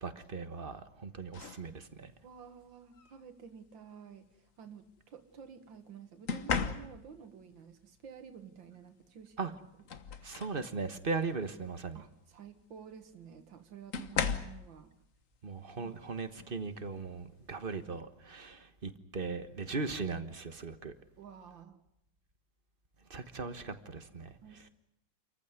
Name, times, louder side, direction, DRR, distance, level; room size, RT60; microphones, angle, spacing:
voice 1, 0.0-2.1 9.4-9.5 10.2-12.0 15.4-20.9 23.1-24.7, right 4 dB, 30° right, 10 dB, 1.4 m, -38 dB
sound 1, 1.3-1.7 2.9-3.2 6.3-7.3 9.0-9.1 9.5-10.7 11.1-11.4 12.8-12.9 13.9-14.7 16.4-16.6 17.0-17.3, left 6 dB, 50° left, 1.5 m, -36 dB
voice 2, 2.2-9.5 11.9-14.9 21.2-21.8 24.4-24.7, right 7 dB, 90° right, 7 dB, 2.2 m, -51 dB
27.5 x 15.0 x 9.6 m, 0.81 s
omnidirectional pair, 2.0 m